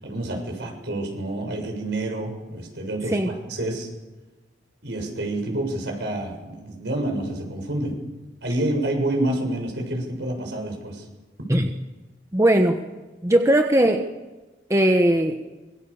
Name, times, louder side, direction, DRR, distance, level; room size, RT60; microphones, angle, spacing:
voice 1, 0.0-3.9 4.8-7.9 8.4-11.0, right 1 dB, 65° right, 2 dB, 7.3 m, -28 dB
voice 2, 12.3-12.8 13.2-14.0 14.7-15.4, right 1 dB, 15° right, 5 dB, 1.2 m, -18 dB
25.5 x 22.0 x 7.1 m, 1.2 s
head